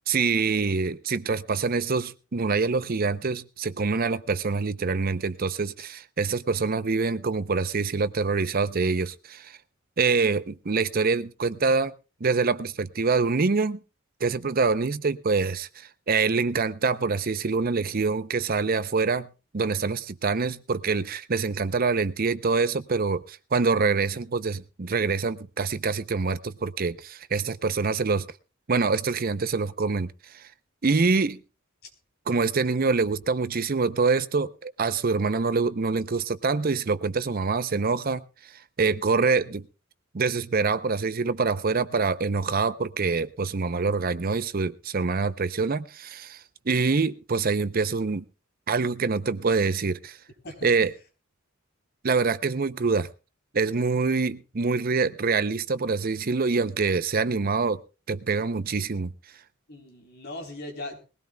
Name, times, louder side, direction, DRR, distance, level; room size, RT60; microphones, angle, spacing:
voice 1, 0.1-9.6 10.0-11.9 12.2-13.8 14.2-28.3 28.7-30.5 30.8-31.4 32.3-38.2 38.8-39.7 40.1-48.2 48.7-50.2 50.6-50.9 52.0-53.1 53.5-57.8 58.1-59.1, right 4 dB, 45° right, 0.6 m, -25 dB
voice 2, 50.4-50.9 59.7-61.0, left 1 dB, 50° left, 3.8 m, -39 dB
21.0 x 16.5 x 2.3 m
head